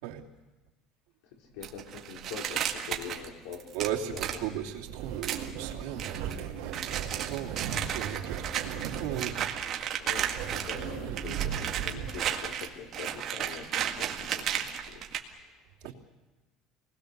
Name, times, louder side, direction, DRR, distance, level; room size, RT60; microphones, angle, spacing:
voice 1, 1.3-3.7 4.0-4.5 10.0-15.9, left 6 dB, 85° left, 1 dB, 4.5 m, -44 dB
sound 1, 1.6-4.5 5.2-5.5 6.0-6.4 6.7-10.9 11.2-15.2, right 10 dB, 35° right, 1.9 m, -33 dB
voice 2, 3.7-9.5 15.8-15.9, right 10 dB, 90° right, 0 dB, 2.8 m, -37 dB
sound 2, 4.1-12.1, right 8 dB, 65° right, 3.1 m, -38 dB
28.5 x 20.0 x 6.8 m, 1.2 s
cardioid pair, 175°, 0 cm